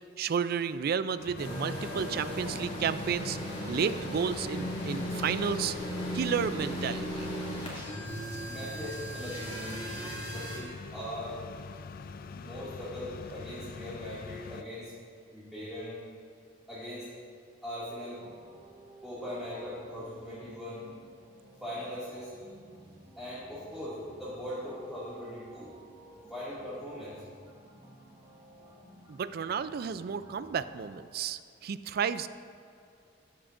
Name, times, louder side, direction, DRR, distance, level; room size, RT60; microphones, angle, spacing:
voice 1, 0.2-3.4 3.7-5.7 6.1-7.3 29.1-32.3, right 7 dB, 55° right, 14 dB, 0.4 m, -32 dB
sound 1, 1.2-14.6, left 4 dB, 50° left, 0.3 m, -44 dB
sound 2, 1.4-10.6, equal, 30° left, 2.3 m, -37 dB
voice 2, 8.5-11.4 12.3-15.0 15.3-16.0 16.7-17.1 17.6-18.2 19.0-20.8 21.6-22.3 23.2-25.7 26.3-27.2, left 1 dB, ahead, -11 dB, 2.2 m, -40 dB
sound 3, 18.2-31.0, right 2 dB, 20° right, 1.2 m, -55 dB
14.0 x 10.0 x 2.6 m, 2.4 s
head